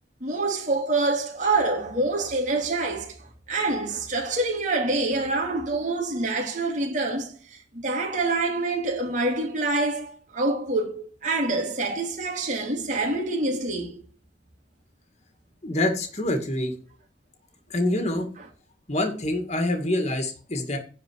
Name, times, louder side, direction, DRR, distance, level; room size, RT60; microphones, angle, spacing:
voice 1, 0.2-14.0, right 2 dB, 40° right, 3.0 m, -26 dB
voice 2, 15.6-16.7 17.7-18.3 18.9-20.8, left 1 dB, 35° left, 2.1 m, -26 dB
10.5 x 4.8 x 8.0 m
head